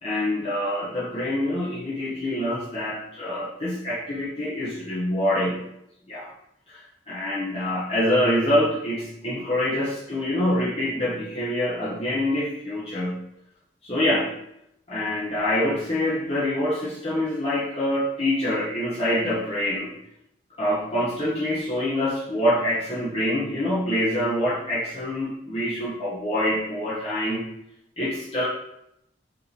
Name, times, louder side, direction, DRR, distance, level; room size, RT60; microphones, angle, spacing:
voice 1, 0.0-5.6 6.1-6.3 6.7-6.8 7.1-13.2 13.8-14.3 14.9-19.9 20.6-27.5 28.0-28.5, left 1 dB, 35° left, -7 dB, 0.8 m, -25 dB
4.5 x 2.7 x 3.1 m, 0.78 s
head